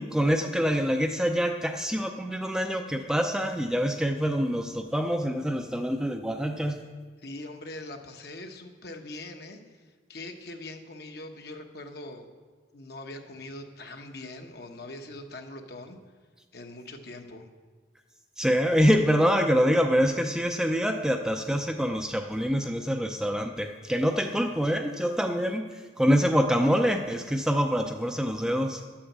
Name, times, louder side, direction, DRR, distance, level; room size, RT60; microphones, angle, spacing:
voice 1, 0.0-6.8 18.4-28.8, equal, 5° right, 4 dB, 0.5 m, -25 dB
voice 2, 7.2-12.3 12.7-16.0 16.5-17.5, left 2 dB, 55° left, 4 dB, 1.1 m, -42 dB
11.0 x 8.6 x 7.3 m, 1.4 s
head